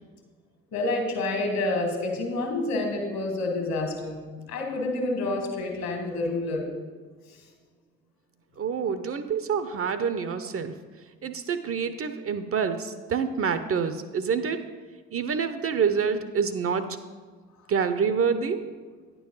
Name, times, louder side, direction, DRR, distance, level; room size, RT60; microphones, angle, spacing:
voice 1, 0.7-4.2 4.5-6.7 7.3-7.4, left 2 dB, 60° left, 2 dB, 1.8 m, -28 dB
voice 2, 8.6-10.7 11.2-14.6 15.1-17.0 17.7-18.6, right 6 dB, 35° right, 10 dB, 0.6 m, -27 dB
9.6 x 3.9 x 6.2 m, 1.5 s
figure-of-eight pair, 40°, 40 cm